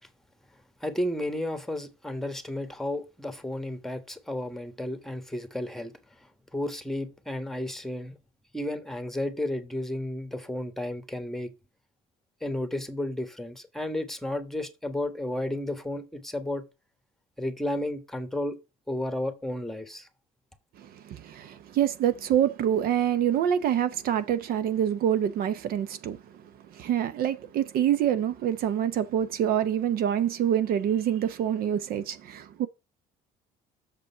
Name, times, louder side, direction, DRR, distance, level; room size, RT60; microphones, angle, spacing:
voice 1, 0.8-5.9 6.5-8.2 8.5-11.5 12.4-16.6 17.4-18.6 18.9-20.1, left 1 dB, ahead, 1.3 m, -32 dB
voice 2, 20.8-26.4 26.7-32.7, right 10 dB, 65° right, 0.7 m, -26 dB
6.8 x 5.1 x 5.6 m
cardioid pair, 100°, 16 cm